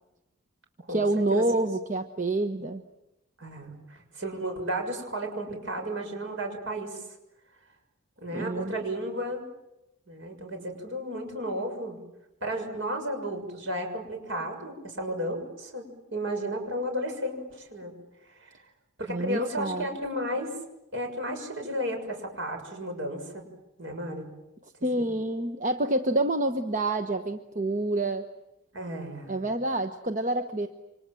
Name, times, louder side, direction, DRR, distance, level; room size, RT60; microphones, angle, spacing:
voice 1, 0.9-2.8 8.3-8.7 19.1-19.9 24.8-28.2 29.3-30.7, right 2 dB, 35° right, 7 dB, 1.1 m, -27 dB
voice 2, 3.4-7.2 8.2-9.5 10.1-12.0 12.4-17.9 18.2-18.6 19.0-20.6 20.9-23.4 23.8-24.3 25.0-25.1 28.7-29.5, equal, 60° right, 3 dB, 6.6 m, -33 dB
29.0 x 25.5 x 7.7 m, 0.91 s
head